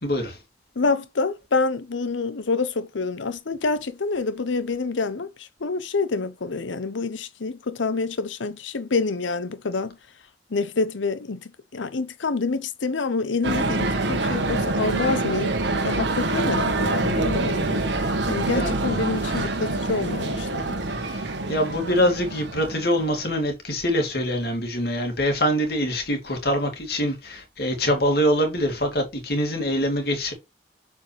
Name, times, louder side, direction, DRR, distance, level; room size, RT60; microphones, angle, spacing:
voice 1, 0.0-0.4 18.5-18.7 21.0-30.3, equal, 55° left, 2.4 m, -24 dB
voice 2, 0.8-10.0 10.5-15.6 15.8-20.8, left 4 dB, 90° left, 0.8 m, -27 dB
sound 1, 13.4-23.3, right 2 dB, 75° right, 1.4 m, -26 dB
7.1 x 5.0 x 3.3 m
head